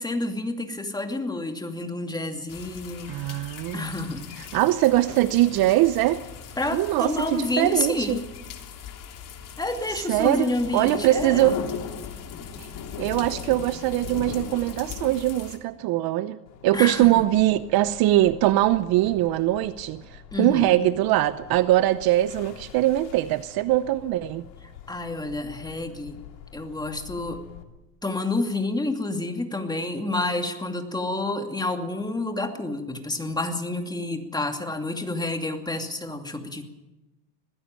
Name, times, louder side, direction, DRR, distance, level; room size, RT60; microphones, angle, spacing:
voice 1, 0.0-3.2 3.7-4.3 6.6-8.3 9.6-11.6 16.7-17.2 20.3-20.7 24.9-26.2 26.5-27.4 28.0-36.6, left 2 dB, 10° left, 5 dB, 2.5 m, -29 dB
sound 1, 2.5-15.6, left 7 dB, 40° left, 3.2 m, -38 dB
voice 2, 3.1-3.8 4.5-6.2 6.7-8.2 10.1-11.6 12.6-12.7 13.0-16.4 16.6-24.4, right 15 dB, 45° right, 14 dB, 0.9 m, -22 dB
sound 2, 16.5-27.6, left 9 dB, 90° left, 2.8 m, -47 dB
20.5 x 16.0 x 9.0 m, 1.1 s
supercardioid pair, 110°, 50 cm